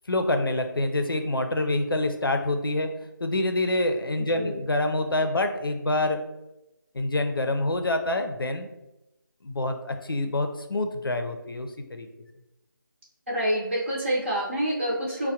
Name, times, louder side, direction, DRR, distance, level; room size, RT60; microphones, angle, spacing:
voice 1, 0.1-2.9 3.2-6.2 6.9-8.7 9.4-12.1, left 2 dB, 85° left, 6 dB, 0.5 m, -26 dB
voice 2, 13.3-15.3, right 1 dB, 35° right, -5 dB, 0.7 m, -27 dB
4.5 x 2.1 x 2.7 m, 0.94 s
figure-of-eight pair, 165°, 12 cm